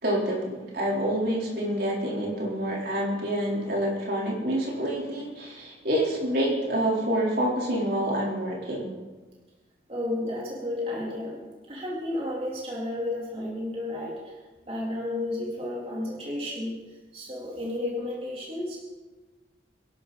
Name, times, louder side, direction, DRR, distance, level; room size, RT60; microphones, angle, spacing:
voice 1, 0.0-8.9, right 1 dB, 60° right, -3 dB, 4.3 m, -27 dB
voice 2, 9.9-11.4 11.7-14.4 14.7-16.8 17.1-18.8, left 1 dB, 35° right, -4 dB, 3.8 m, -32 dB
25.5 x 12.0 x 4.3 m, 1.2 s
head